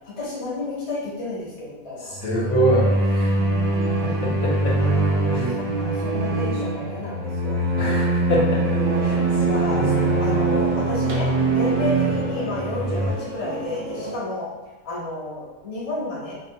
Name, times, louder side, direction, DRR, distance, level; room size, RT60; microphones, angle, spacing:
voice 1, 0.2-2.2 4.1-4.2 4.8-7.6 8.9-9.8 10.2-14.5 14.8-16.3, left 2 dB, 30° left, -6 dB, 0.7 m, -31 dB
sound 1, 2.1-13.1, right 2 dB, 85° right, 1.1 m, -22 dB
voice 2, 2.2-3.4 4.0-4.8 5.3-5.6 7.8-9.2 9.5-10.1 12.1-12.2, right 1 dB, 75° left, -4 dB, 1.1 m, -25 dB
sound 2, 8.8-14.1, right 2 dB, 65° right, 1.0 m, -32 dB
2.9 x 2.2 x 2.6 m, 1.2 s
omnidirectional pair, 1.5 m